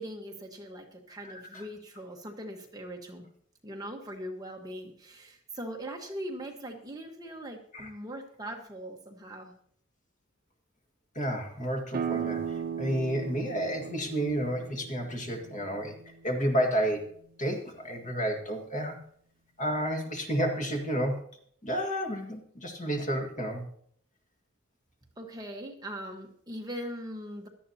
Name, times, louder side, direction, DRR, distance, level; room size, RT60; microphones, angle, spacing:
voice 1, 0.0-3.3 3.6-9.5 25.2-27.5, equal, 20° right, 1 dB, 1.3 m, -41 dB
voice 2, 1.2-1.6 7.7-7.9 11.2-16.0 16.2-17.1 17.4-19.0 19.6-21.2 21.6-23.6, equal, 35° left, 3 dB, 1.8 m, -31 dB
sound 1, 11.9-17.3, right 7 dB, 45° right, 0.9 m, -37 dB
17.0 x 12.5 x 2.8 m, 0.63 s
head